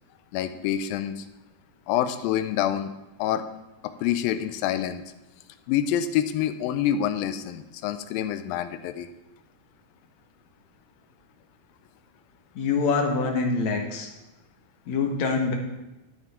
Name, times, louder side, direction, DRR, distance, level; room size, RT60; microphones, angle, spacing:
voice 1, 0.3-1.3 1.9-2.9 3.2-3.4 3.8-5.0 5.7-9.1, left 10 dB, 80° left, 10 dB, 2.3 m, -27 dB
voice 2, 12.6-14.1 14.9-15.5, left 4 dB, 60° left, 2 dB, 2.3 m, -25 dB
11.0 x 9.3 x 4.3 m, 0.98 s
omnidirectional pair, 4.3 m